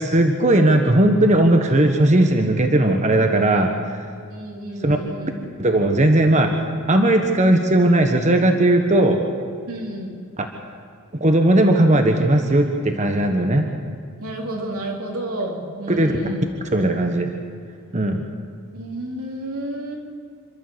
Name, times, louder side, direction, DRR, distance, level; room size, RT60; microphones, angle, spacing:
voice 1, 0.0-3.7 4.8-5.0 5.6-6.5 6.9-9.2 10.4-10.5 11.2-13.7 15.9-16.1 16.7-17.3 17.9-18.2, right 1 dB, 35° right, 4 dB, 1.2 m, -17 dB
voice 2, 4.3-5.4 9.7-10.2 14.2-16.4 18.7-20.0, right 1 dB, 90° right, 0 dB, 3.6 m, -30 dB
27.5 x 12.0 x 8.0 m, 2.1 s
head